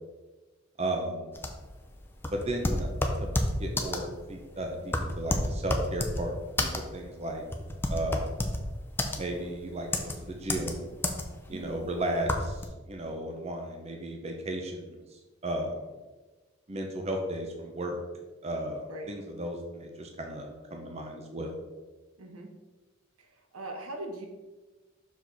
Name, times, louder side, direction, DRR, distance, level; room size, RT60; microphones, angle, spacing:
voice 1, 0.8-1.3 2.3-2.9 3.2-6.3 6.6-7.4 7.9-8.3 9.2-10.9 11.5-14.8 15.1-15.9 16.7-18.0 18.4-21.6, right 1 dB, 30° right, 3 dB, 0.7 m, -34 dB
sound 1, 1.3-12.6, left 1 dB, 10° left, 0.5 m, -30 dB
voice 2, 22.2-22.5 23.5-24.3, right 1 dB, 85° right, 3 dB, 1.1 m, -39 dB
6.0 x 4.8 x 4.0 m, 1.2 s
head